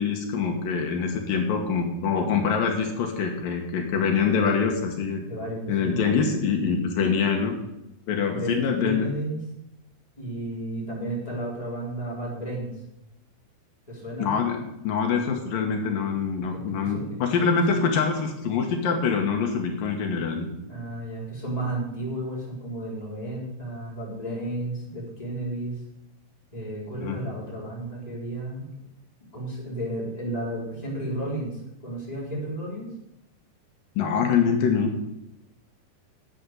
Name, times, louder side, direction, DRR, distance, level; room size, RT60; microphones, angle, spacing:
voice 1, 0.0-5.2 5.7-7.6 8.1-9.1 14.2-20.5 27.0-27.2 34.0-34.9, left 6 dB, 65° left, 3 dB, 2.7 m, -25 dB
voice 2, 5.3-6.0 8.3-9.4 10.2-12.7 13.9-14.3 16.5-17.0 20.7-25.7 26.5-28.7 29.3-32.9, right 1 dB, 10° left, -5 dB, 3.7 m, -33 dB
11.0 x 8.4 x 6.5 m, 0.88 s
omnidirectional pair, 4.9 m